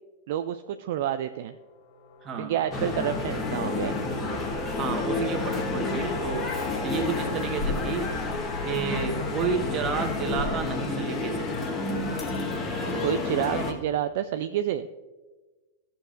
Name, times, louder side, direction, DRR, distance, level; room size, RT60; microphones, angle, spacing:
voice 1, 0.3-1.5 2.4-4.0 13.0-14.9, right 10 dB, 55° right, 9 dB, 0.3 m, -29 dB
sound 1, 1.4-7.3, left 4 dB, 45° left, 2.9 m, -39 dB
voice 2, 2.2-2.6 4.1-4.4 4.7-8.1 8.6-11.5 12.8-13.2, right 5 dB, 30° right, 4 dB, 1.4 m, -31 dB
sound 2, 2.7-13.7, left 3 dB, 25° left, 1.3 m, -30 dB
15.0 x 6.9 x 2.5 m, 1.3 s
figure-of-eight pair, 90°, 0 cm